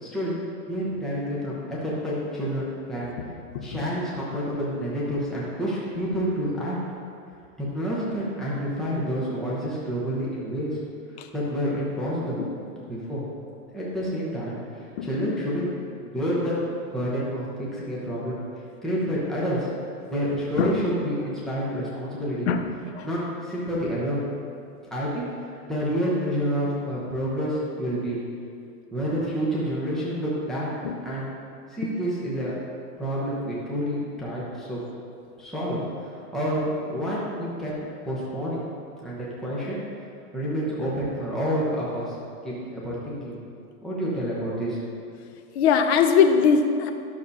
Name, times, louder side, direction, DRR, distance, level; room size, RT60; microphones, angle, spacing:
voice 1, 0.0-0.3 0.7-3.1 3.6-6.8 7.6-10.7 11.3-12.4 12.9-13.2 13.7-14.6 15.0-16.6 16.9-18.4 18.8-19.7 20.1-22.5 23.0-24.2 24.9-25.3 25.7-28.2 28.9-30.7 31.0-31.3 31.7-32.5 33.0-34.8 35.4-35.8 36.3-37.7 38.0-38.6 39.0-39.8 40.3-42.1 42.4-43.4 43.8-44.8, equal, ahead, -7 dB, 0.8 m, -28 dB
voice 2, 45.6-46.9, left 6 dB, 45° left, 6 dB, 0.7 m, -21 dB
11.0 x 6.7 x 2.7 m, 2.4 s
hypercardioid pair, 150°, 47 cm